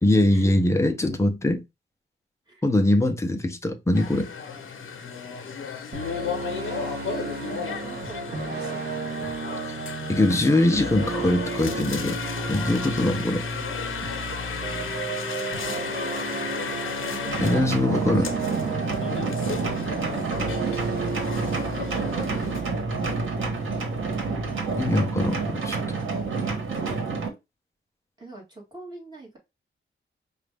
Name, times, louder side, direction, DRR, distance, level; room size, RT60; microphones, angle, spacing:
voice 1, 0.0-1.6 2.6-4.3 9.7-9.8 10.1-12.2 12.5-13.5 17.4-18.3 24.8-25.8, left 1 dB, 15° left, 0.6 m, -22 dB
sound 1, 3.9-22.6, left 6 dB, 75° left, 0.8 m, -35 dB
sound 2, 5.9-25.1, right 3 dB, 55° right, 0.9 m, -33 dB
voice 2, 7.3-9.1 15.0-16.0 17.1-18.6 22.4-23.5 28.2-29.4, right 2 dB, 20° right, 1.8 m, -44 dB
sound 3, 17.3-27.3, right 4 dB, 70° right, 1.2 m, -29 dB
4.9 x 2.3 x 3.3 m
wide cardioid pair, 150°, 21 cm